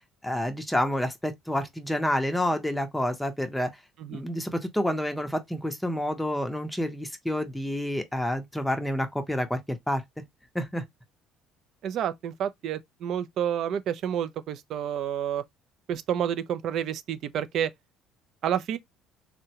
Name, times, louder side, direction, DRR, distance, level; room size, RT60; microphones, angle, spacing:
voice 1, 0.2-3.7 4.1-10.0 10.5-10.8, left 1 dB, 5° left, 0.6 m, -28 dB
voice 2, 11.8-15.4 15.9-17.7 18.4-18.8, right 9 dB, 60° right, 0.4 m, -29 dB
3.6 x 2.1 x 2.8 m
cardioid pair, 110°, 0 cm